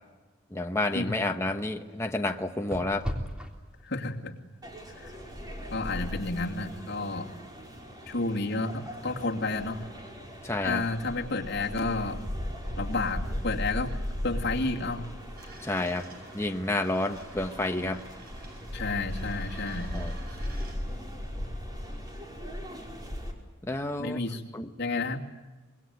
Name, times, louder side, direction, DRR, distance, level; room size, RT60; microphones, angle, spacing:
voice 1, 0.5-3.1 10.4-10.8 15.6-16.1 16.3-18.0 19.9-20.1 23.6-24.2 24.5-24.7, left 2 dB, 15° left, 3 dB, 1.1 m, -30 dB
sound 1, 1.7-19.6, equal, 5° right, 3.4 m, -47 dB
voice 2, 3.8-4.3 5.7-7.3 8.1-9.8 10.6-12.2 12.8-13.9 14.2-15.1 18.7-19.9 24.0-24.4 24.8-25.2, left 3 dB, 60° left, 0 dB, 2.6 m, -30 dB
sound 2, 4.6-23.3, equal, 20° right, 4.9 m, -38 dB
sound 3, 15.4-16.4 16.8-18.8 19.0-20.8, right 3 dB, 50° right, 7.4 m, -51 dB
25.0 x 22.0 x 9.5 m, 1.2 s
head